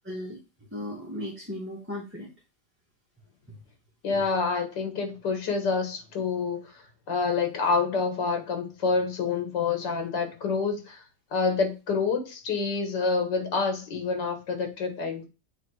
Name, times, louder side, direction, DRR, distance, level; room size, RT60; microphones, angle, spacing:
voice 1, 0.0-0.4 0.7-2.3 3.5-3.6 4.1-4.2, left 1 dB, 5° right, 1.9 m, -36 dB
voice 2, 4.0-6.7 7.1-11.0 11.3-15.2, left 4 dB, 85° left, 2.2 m, -27 dB
7.9 x 4.0 x 4.8 m
omnidirectional pair, 1.8 m